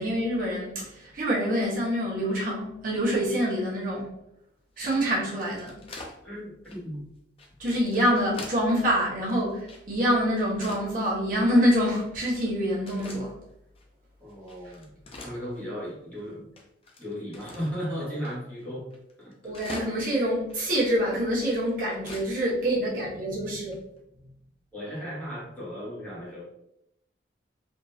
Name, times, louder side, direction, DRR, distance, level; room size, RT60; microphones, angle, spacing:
voice 1, 0.0-4.1 4.8-5.7 7.6-13.3 19.4-23.8, equal, 45° right, -6 dB, 1.1 m, -26 dB
sound 1, 4.8-6.2 6.6-6.8 7.4-8.7 9.0-10.0 10.4-10.9 11.4-11.6 12.2-12.6 12.9-13.2 13.8-13.9 14.3-15.9 16.2-16.3 16.6-17.8 18.2-18.4 18.6-18.7 18.9-20.2 20.5-20.6 21.3-22.3 22.6-22.7 22.9-23.0 23.7-24.0, left 2 dB, 30° left, 0.4 m, -43 dB
voice 2, 6.2-7.1 14.2-14.9 15.2-16.5 17.0-18.9 19.2-19.5 24.7-26.4, equal, 10° left, -8 dB, 1.2 m, -36 dB
3.6 x 2.6 x 2.7 m, 0.79 s
head